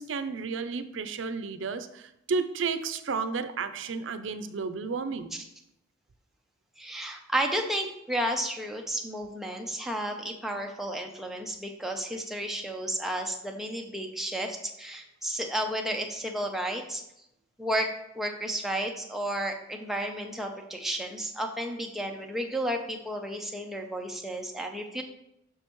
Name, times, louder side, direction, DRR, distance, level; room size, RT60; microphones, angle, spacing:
voice 1, 0.0-5.3, right 4 dB, 80° right, 11 dB, 0.5 m, -32 dB
voice 2, 6.8-17.0 17.6-25.0, right 1 dB, ahead, 2 dB, 0.6 m, -32 dB
6.4 x 6.4 x 3.0 m, 0.83 s
head